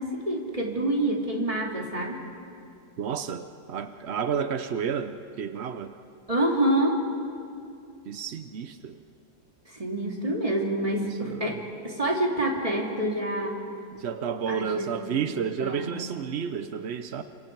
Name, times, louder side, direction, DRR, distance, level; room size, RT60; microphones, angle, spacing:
voice 1, 0.0-2.2 6.3-7.0 9.7-11.6 11.8-13.6 14.5-15.3 15.6-16.0, right 1 dB, 20° right, 0 dB, 2.6 m, -27 dB
voice 2, 3.0-6.0 8.1-9.0 11.0-11.6 13.9-17.2, right 7 dB, 80° right, 10 dB, 0.5 m, -31 dB
29.5 x 26.5 x 4.6 m, 2.5 s
omnidirectional pair, 2.1 m